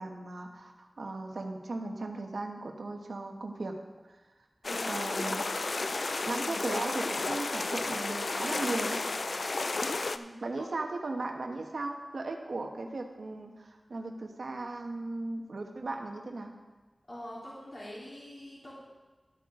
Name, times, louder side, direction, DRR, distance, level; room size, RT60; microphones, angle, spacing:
voice 1, 0.0-3.8 4.9-5.4 6.2-9.0 10.4-16.5, right 2 dB, 90° right, 3 dB, 1.2 m, -37 dB
sound 1, 4.6-10.2, left 3 dB, 65° left, 0.4 m, -32 dB
voice 2, 10.1-10.7 17.1-18.8, equal, 45° left, -7 dB, 3.6 m, -45 dB
12.5 x 8.8 x 3.8 m, 1.2 s
wide cardioid pair, 80°, 0 cm